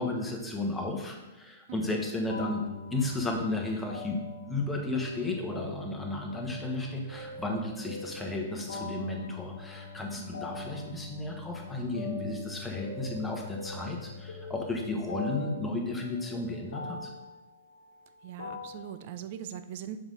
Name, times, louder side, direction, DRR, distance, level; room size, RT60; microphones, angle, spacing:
voice 1, 0.0-17.1, left 2 dB, 5° left, 0 dB, 1.3 m, -33 dB
sound 1, 2.3-18.9, left 3 dB, 70° left, 1.3 m, -42 dB
voice 2, 18.2-20.0, right 10 dB, 50° right, 11 dB, 0.5 m, -41 dB
7.2 x 4.9 x 3.8 m, 1.0 s
figure-of-eight pair, 110°, 0 cm